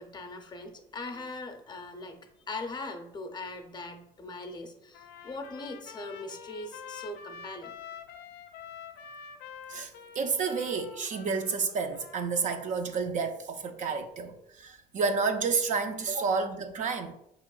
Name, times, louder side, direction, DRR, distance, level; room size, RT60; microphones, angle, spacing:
voice 1, 0.0-2.2 2.5-7.7, left 2 dB, 25° left, 0.5 m, -40 dB
Trumpet, 4.9-13.1, left 7 dB, 80° left, 0.4 m, -47 dB
voice 2, 9.7-17.1, right 5 dB, 45° right, 0.4 m, -30 dB
4.5 x 2.9 x 2.3 m
cardioid pair, 110°, 17 cm